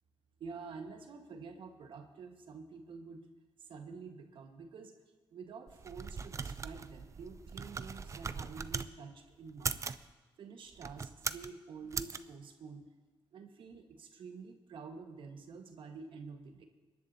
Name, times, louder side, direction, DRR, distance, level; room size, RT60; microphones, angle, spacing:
voice 1, 0.4-3.3 3.6-5.0 5.3-10.0 10.4-12.9 13.3-16.7, right 5 dB, 70° right, 4 dB, 1.4 m, -48 dB
sound 1, 5.7-8.9 9.5-10.0 10.7-11.5 11.9-12.2, right 5 dB, 35° right, 0.5 m, -39 dB
26.0 x 11.0 x 2.7 m, 1.3 s
cardioid pair, 85°, 9 cm